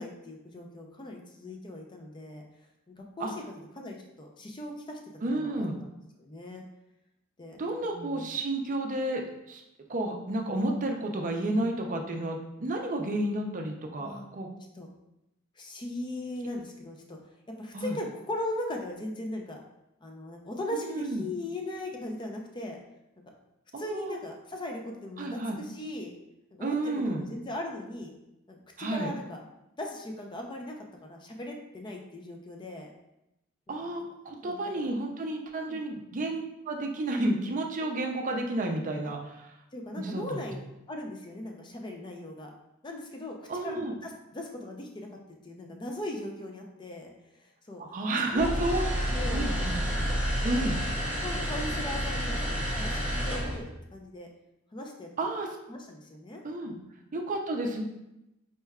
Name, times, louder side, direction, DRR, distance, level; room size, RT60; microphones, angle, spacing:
voice 1, 0.0-2.4 2.9-5.0 5.4-5.6 6.2-6.6 7.4-7.6 7.8-8.3 14.0-14.2 14.7-14.9 15.6-17.2 17.6-19.6 20.0-22.8 23.8-26.1 26.6-28.1 28.5-29.4 29.8-30.8 31.0-32.9 33.7-33.8 34.4-34.9 35.6-35.8 39.7-40.6 40.9-42.5 42.8-43.4 43.6-45.1 45.4-47.1 47.7-47.8 48.3-49.7 50.1-50.2 50.6-50.8 51.2-54.3 54.7-55.1 55.7-56.8, left 1 dB, 20° left, 2 dB, 0.5 m, -39 dB
voice 2, 5.2-5.8 7.6-9.6 9.9-14.5 17.7-18.0 20.7-21.3 23.7-24.2 25.2-25.6 26.6-27.2 28.8-29.1 33.7-39.5 40.0-40.4 43.5-43.9 47.8-49.7 50.4-50.8 55.2-55.5 56.4-56.7 57.1-57.8, right 2 dB, 40° right, 2 dB, 0.5 m, -31 dB
sound 1, 48.4-53.6, equal, 5° right, 0.8 m, -29 dB
4.3 x 3.3 x 2.3 m, 0.89 s
head